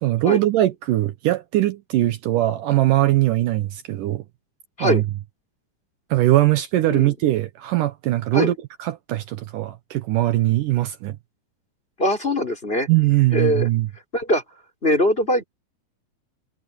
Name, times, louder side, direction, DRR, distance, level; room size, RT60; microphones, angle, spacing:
voice 1, 0.0-4.2 4.8-5.1 6.1-11.2 12.9-13.9, right 15 dB, 70° right, 2.4 m, -21 dB
voice 2, 12.0-12.9 13.3-13.7 14.1-14.4 14.8-15.4, left 1 dB, 15° left, 4.1 m, -21 dB
omnidirectional pair, 4.1 m